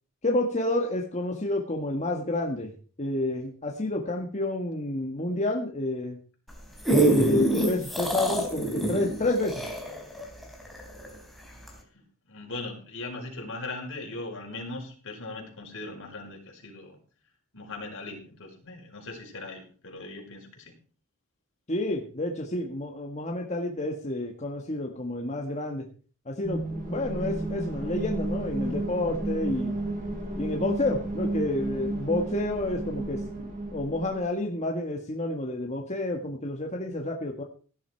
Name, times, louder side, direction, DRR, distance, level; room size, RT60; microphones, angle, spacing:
voice 1, 0.2-2.7 3.0-6.2 6.9-9.6 21.7-25.9 26.3-29.7 30.4-37.4, left 2 dB, 30° left, 1 dB, 1.7 m, -29 dB
sound 1, 6.5-11.2 11.7-11.8, right 2 dB, ahead, 3.7 m, -25 dB
voice 2, 12.3-17.0 17.5-20.7, left 2 dB, 60° left, 1 dB, 5.4 m, -39 dB
sound 2, 26.4-34.2, right 2 dB, 35° right, 5.7 m, -32 dB
17.0 x 11.0 x 4.6 m, 0.40 s
head